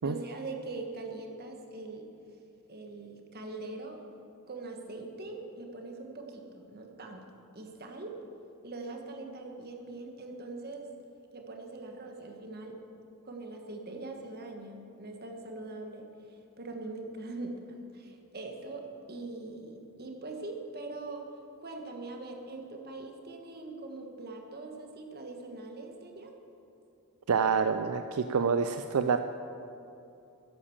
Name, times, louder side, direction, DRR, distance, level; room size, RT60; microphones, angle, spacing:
voice 1, 0.0-2.1 2.7-4.0 4.5-7.3 7.5-8.2 8.6-10.9 11.3-12.8 13.2-16.1 16.6-21.3 21.6-26.3, right 2 dB, 45° right, 3 dB, 1.5 m, -42 dB
voice 2, 27.3-29.2, right 5 dB, 75° right, 9 dB, 0.5 m, -27 dB
12.0 x 10.0 x 7.2 m, 2.7 s
head